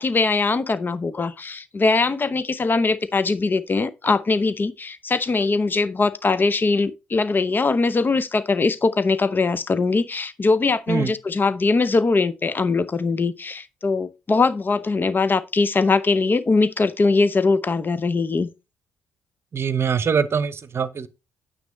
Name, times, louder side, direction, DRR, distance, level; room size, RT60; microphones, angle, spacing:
voice 1, 0.0-18.5, left 3 dB, 30° left, 0.8 m, -21 dB
voice 2, 19.5-21.1, right 6 dB, 40° right, 0.8 m, -23 dB
9.3 x 7.8 x 3.1 m
figure-of-eight pair, 45°, 6 cm